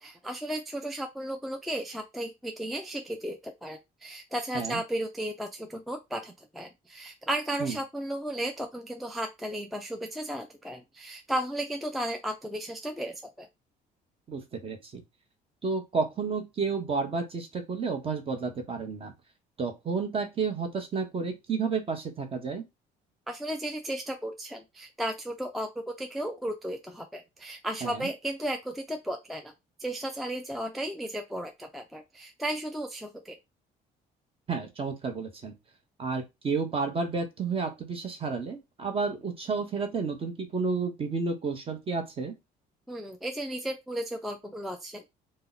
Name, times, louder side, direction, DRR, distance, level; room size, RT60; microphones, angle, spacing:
voice 1, 0.0-13.5 23.3-29.5 29.8-33.4 42.9-45.1, right 1 dB, ahead, 5 dB, 0.3 m, -34 dB
voice 2, 14.3-15.0 15.6-19.1 19.6-22.6 27.8-28.1 34.5-35.5 36.0-42.3, right 4 dB, 35° right, 6 dB, 0.8 m, -31 dB
2.7 x 2.1 x 3.9 m, 0.22 s
cardioid pair, 110°, 17 cm